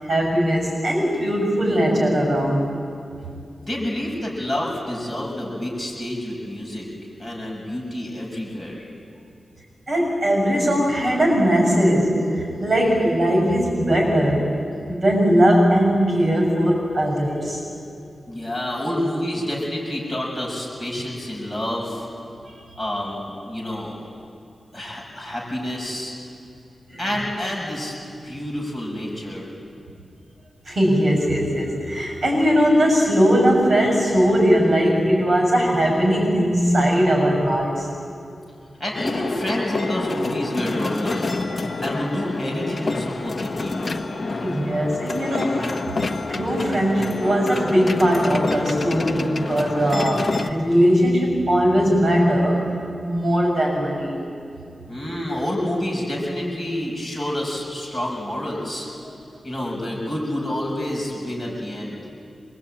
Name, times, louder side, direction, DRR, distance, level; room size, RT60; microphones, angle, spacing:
voice 1, 0.0-2.7 9.9-14.5 14.9-17.6 22.4-22.6 26.9-27.0 30.6-37.9 44.4-45.8 46.3-52.7 53.0-54.2 61.4-61.6, equal, 40° right, 0 dB, 7.0 m, -19 dB
voice 2, 3.7-6.9 7.2-8.9 18.3-22.1 22.8-24.0 24.7-26.1 27.0-27.9 28.2-29.5 38.8-41.4 41.8-43.9 54.9-58.9 59.4-62.0, left 1 dB, 10° left, -4 dB, 6.3 m, -28 dB
sound 1, 38.9-50.5, left 3 dB, 35° left, 1.1 m, -28 dB
26.5 x 22.0 x 8.8 m, 2.5 s
wide cardioid pair, 155°, 0 cm